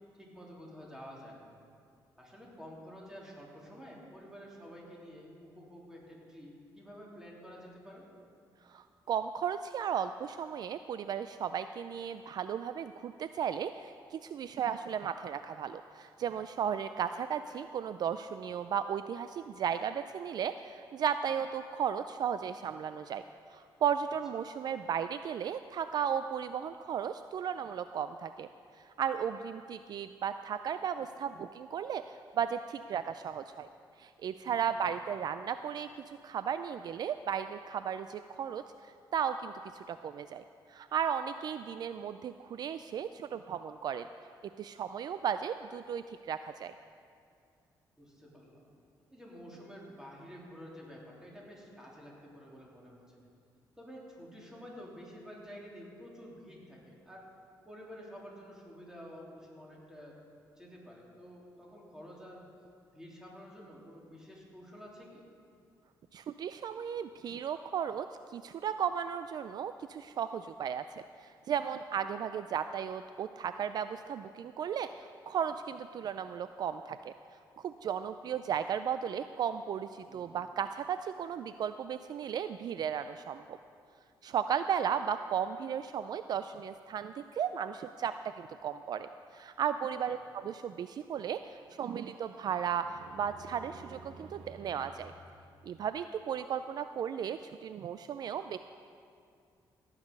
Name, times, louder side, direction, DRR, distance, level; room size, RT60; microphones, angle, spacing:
voice 1, 0.2-1.4 2.2-8.1 34.5-34.9 48.0-48.6 49.1-53.2 53.8-57.3 57.6-60.2 60.6-62.5 62.9-65.2 66.7-66.8 80.1-80.4 90.1-90.2, equal, 5° right, -4 dB, 3.3 m, -50 dB
voice 2, 8.6-23.2 23.5-28.5 28.8-33.7 34.0-44.1 44.6-46.7 66.1-77.1 77.6-83.6 84.2-95.1 95.6-98.6, right 8 dB, 55° right, 11 dB, 0.4 m, -35 dB
sound 1, 91.5-96.2, right 3 dB, 75° right, 1.1 m, -53 dB
16.5 x 8.3 x 5.4 m, 2.4 s
cardioid pair, 95°, 8 cm